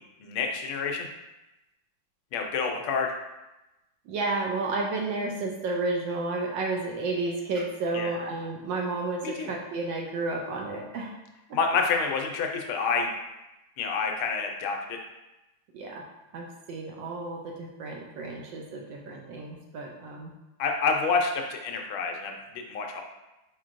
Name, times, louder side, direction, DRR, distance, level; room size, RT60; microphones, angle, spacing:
voice 1, 0.2-1.1 2.3-3.1 7.9-8.1 9.2-9.5 11.5-13.1 13.8-15.0 20.6-23.0, left 5 dB, 80° left, 3 dB, 1.4 m, -28 dB
voice 2, 4.1-11.1 15.7-16.0 16.3-20.3, right 3 dB, 75° right, 0 dB, 1.1 m, -31 dB
4.4 x 4.4 x 2.5 m, 0.99 s
omnidirectional pair, 2.3 m